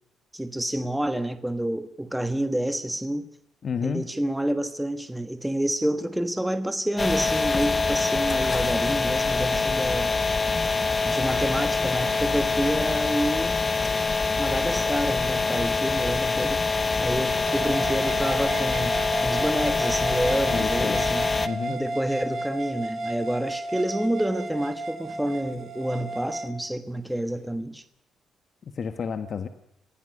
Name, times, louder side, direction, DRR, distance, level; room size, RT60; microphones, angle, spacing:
voice 1, 0.3-3.3 3.8-10.1 11.0-13.6 14.4-16.6 17.0-19.0 19.2-21.3 21.7-27.8, right 1 dB, 5° right, 1.4 m, -28 dB
voice 2, 3.6-4.1 20.5-21.0 21.4-21.8 28.7-29.5, left 6 dB, 50° left, 1.4 m, -30 dB
sound 1, 7.0-21.5, left 4 dB, 25° left, 1.1 m, -25 dB
sound 2, 17.5-26.5, right 2 dB, 50° right, 2.5 m, -33 dB
26.0 x 16.5 x 6.6 m
cardioid pair, 90°, 0 cm